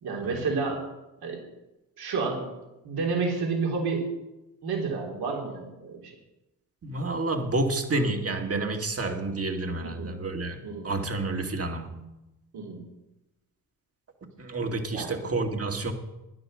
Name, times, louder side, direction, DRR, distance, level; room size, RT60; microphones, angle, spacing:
voice 1, 0.0-0.8 1.2-1.4 2.0-2.5 2.8-4.1 4.6-6.1 9.8-10.1 10.6-10.9 12.5-12.8 14.9-15.1, right 4 dB, 70° right, 0 dB, 3.5 m, -30 dB
voice 2, 6.8-12.0 14.4-15.9, right 2 dB, 35° right, 5 dB, 2.2 m, -29 dB
12.5 x 10.0 x 6.5 m, 0.97 s
supercardioid pair, 70°, 39 cm